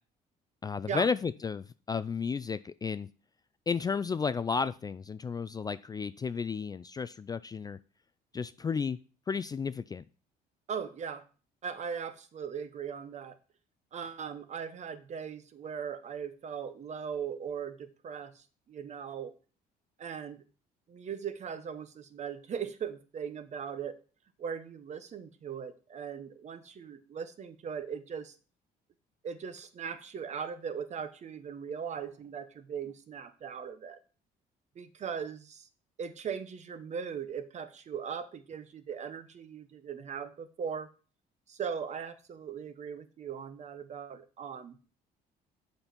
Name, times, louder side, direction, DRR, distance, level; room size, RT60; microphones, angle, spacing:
voice 1, 0.6-3.1 3.7-7.8 8.3-9.0 9.3-10.0, left 5 dB, 25° left, 15 dB, 0.3 m, -33 dB
voice 2, 10.7-11.2 11.6-13.4 13.9-19.3 20.0-20.4 20.9-24.0 24.4-28.3 29.2-34.0 34.7-35.7 36.0-40.9 41.5-44.8, right 7 dB, 45° right, 11 dB, 1.0 m, -39 dB
7.0 x 5.3 x 5.9 m, 0.37 s
cardioid pair, 110°, 17 cm